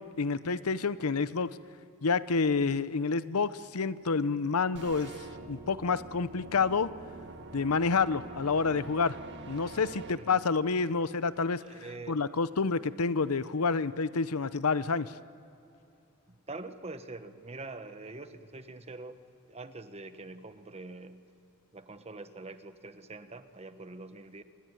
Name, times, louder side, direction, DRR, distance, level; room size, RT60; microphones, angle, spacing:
voice 1, 0.0-1.6 2.0-5.1 5.5-6.9 7.5-9.2 9.5-15.2, left 4 dB, 85° left, 15 dB, 0.8 m, -29 dB
sound 1, 4.7-10.1, right 3 dB, 55° right, 2.0 m, -45 dB
voice 2, 10.1-10.4 11.6-12.2 12.5-12.7 16.3-21.2 21.7-24.4, right 2 dB, 30° right, 9 dB, 1.3 m, -45 dB
27.5 x 21.5 x 9.3 m, 2.7 s
head